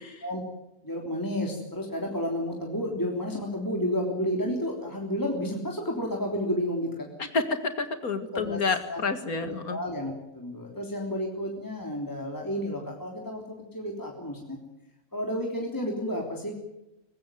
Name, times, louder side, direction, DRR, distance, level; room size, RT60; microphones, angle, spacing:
voice 1, 0.8-7.1 8.3-8.6 8.9-9.0 9.3-14.6 15.1-16.5, equal, 15° left, 0 dB, 3.5 m, -31 dB
voice 2, 7.2-9.8, left 4 dB, 75° left, 9 dB, 2.3 m, -29 dB
23.5 x 20.0 x 9.2 m, 0.90 s
omnidirectional pair, 1.5 m